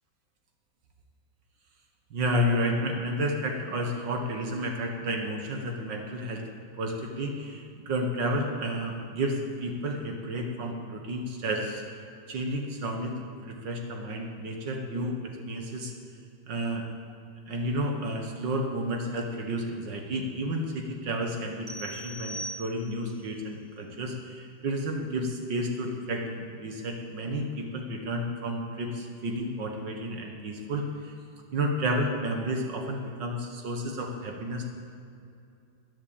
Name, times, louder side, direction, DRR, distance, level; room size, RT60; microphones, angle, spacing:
voice 1, 2.1-6.5 6.8-11.8 12.3-15.9 16.5-16.9 17.5-31.2 31.5-34.7, equal, 75° right, 2 dB, 2.0 m, -31 dB
sound 1, 21.7-23.2, right 1 dB, 35° right, 0.5 m, -40 dB
14.5 x 10.0 x 8.7 m, 2.5 s
omnidirectional pair, 2.0 m